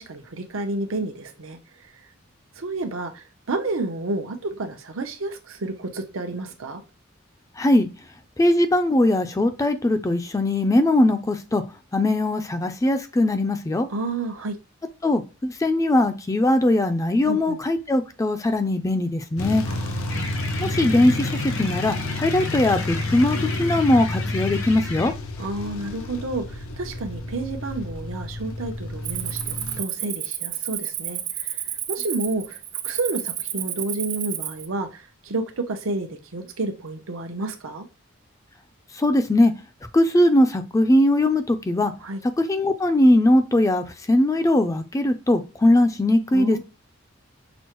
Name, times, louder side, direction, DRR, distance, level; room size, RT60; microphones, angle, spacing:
voice 1, 0.0-2.1 2.5-6.8 13.9-14.6 17.2-17.6 19.7-20.3 25.4-32.6 32.8-37.9 42.0-42.2 46.3-46.6, right 2 dB, 80° right, 5 dB, 0.8 m, -30 dB
voice 2, 7.6-7.9 8.4-11.6 11.9-13.9 15.0-19.7 20.6-25.1 38.9-39.5 39.9-41.9 42.4-46.6, left 1 dB, 15° left, 8 dB, 0.4 m, -20 dB
sound 1, 19.4-29.8, left 2 dB, 90° left, 0.7 m, -30 dB
sound 2, 20.1-25.1, left 2 dB, 65° left, 1.1 m, -34 dB
Cricket, 29.0-34.7, right 12 dB, 50° right, 0.5 m, -31 dB
6.1 x 2.1 x 3.0 m, 0.30 s
head